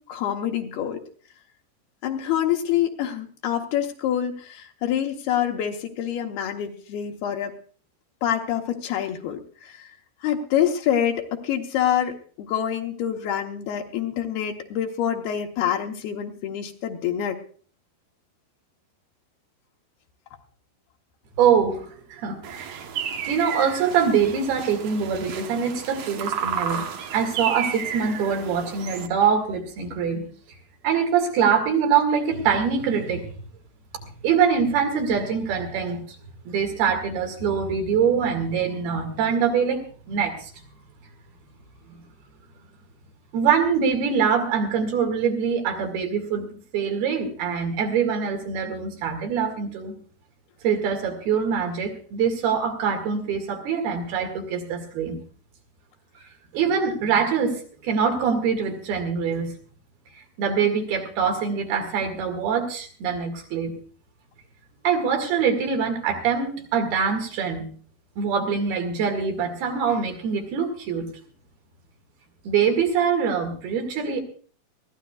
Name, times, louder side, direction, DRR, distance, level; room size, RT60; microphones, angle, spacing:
voice 1, 0.1-1.0 2.0-7.5 8.2-9.9 10.2-17.4, left 10 dB, 75° left, 2 dB, 2.9 m, -26 dB
voice 2, 21.4-22.8 23.3-30.3 30.8-33.3 34.0-36.0 36.5-39.8 40.1-40.5 41.9-42.0 43.3-46.5 46.7-49.9 50.6-55.2 56.5-59.5 60.4-63.7 64.8-67.7 68.2-71.1 72.5-74.2, right 6 dB, 70° right, 4 dB, 4.0 m, -24 dB
sound 1, 22.4-29.1, right 7 dB, 90° right, 1.4 m, -32 dB
22.0 x 15.5 x 2.4 m, 0.44 s
omnidirectional pair, 4.6 m